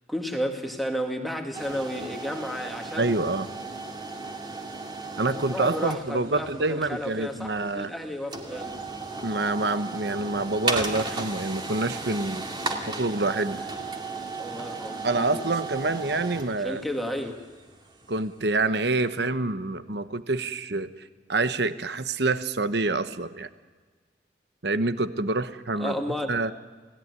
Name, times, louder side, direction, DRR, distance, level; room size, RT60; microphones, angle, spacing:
voice 1, 0.1-3.1 5.3-8.7 14.4-15.4 16.6-17.4 25.8-26.3, equal, ahead, 3 dB, 2.0 m, -32 dB
sound 1, 1.5-18.4, right 3 dB, 25° right, 2.3 m, -36 dB
voice 2, 3.0-3.5 5.2-7.9 9.2-12.4 12.9-13.6 15.0-16.8 18.1-20.9 21.3-23.5 24.6-26.0 26.3-26.5, right 2 dB, 65° right, 12 dB, 1.1 m, -27 dB
29.0 x 17.5 x 9.7 m, 1.4 s
head